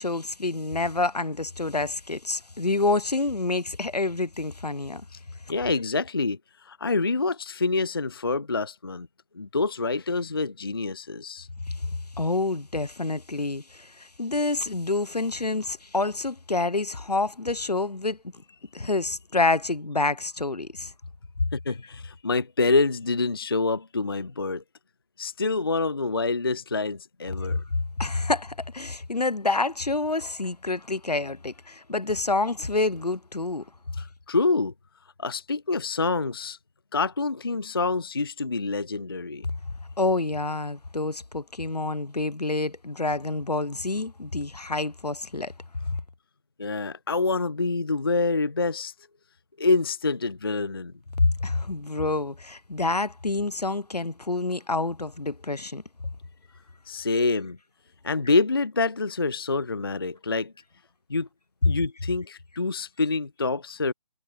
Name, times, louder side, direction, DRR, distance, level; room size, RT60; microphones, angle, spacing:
voice 1, 0.0-5.0 12.2-18.2 18.7-20.9 28.0-33.6 40.0-45.5 51.2-55.8, left 3 dB, 75° left, 1.2 m, -27 dB
voice 2, 5.5-9.1 9.4-11.5 21.5-24.6 25.2-27.6 34.0-34.7 35.2-36.6 36.9-39.5 46.6-48.9 49.6-50.9 56.9-57.6 58.0-60.5 61.1-61.3 61.6-63.9, left 3 dB, 35° left, 0.4 m, -26 dB
figure-of-eight pair, 155°, 20 cm